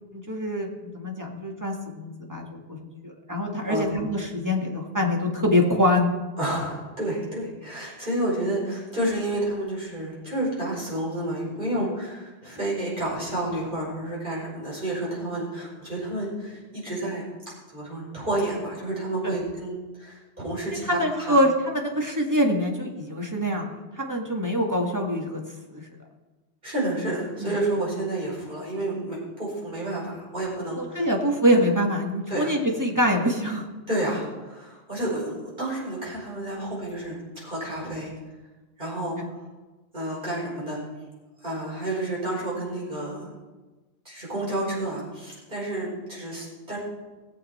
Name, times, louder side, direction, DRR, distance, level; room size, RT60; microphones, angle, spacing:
voice 1, 0.1-6.1 11.8-11.9 19.2-19.3 20.8-25.4 25.7-25.8 27.4-27.5 30.8-33.7 39.2-39.3, equal, 15° right, 0 dB, 1.9 m, -25 dB
voice 2, 6.4-17.2 17.7-21.4 26.6-31.1 32.3-32.5 33.9-38.1 38.8-39.3 39.9-40.8 41.4-43.3 44.0-46.8, right 1 dB, 45° right, -6 dB, 5.0 m, -30 dB
19.0 x 8.0 x 4.3 m, 1.2 s
omnidirectional pair, 1.2 m